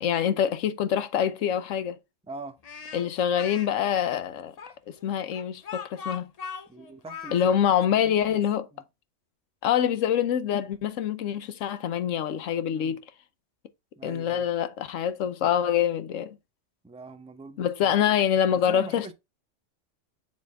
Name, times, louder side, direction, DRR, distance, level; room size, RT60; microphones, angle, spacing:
voice 1, 0.0-2.0 2.9-4.5 4.9-6.3 7.3-8.7 9.6-13.0 14.0-16.4 17.6-19.1, left 9 dB, 85° left, 1.1 m, -25 dB
voice 2, 2.3-2.6 6.7-7.4 7.9-8.4 8.7-8.8 12.7-13.0 14.0-14.5 16.8-17.9 18.5-19.1, right 3 dB, 5° right, 0.6 m, -42 dB
Speech, 2.6-3.7 4.6-7.6, left 6 dB, 40° left, 0.6 m, -39 dB
7.0 x 4.2 x 3.5 m
omnidirectional pair, 1.3 m